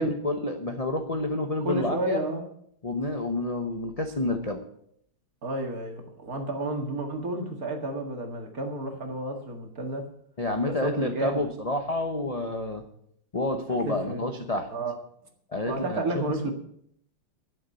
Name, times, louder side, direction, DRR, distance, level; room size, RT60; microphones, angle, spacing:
voice 1, 0.0-2.2 2.8-4.6 10.4-12.8 13.3-14.7 15.5-16.5, left 2 dB, 45° left, 4 dB, 0.4 m, -29 dB
voice 2, 1.6-2.5 5.4-10.1 10.6-11.4 13.7-14.2 14.7-14.9 15.7-16.5, right 2 dB, 45° right, 3 dB, 2.3 m, -31 dB
12.0 x 7.3 x 8.3 m, 0.69 s
omnidirectional pair, 2.4 m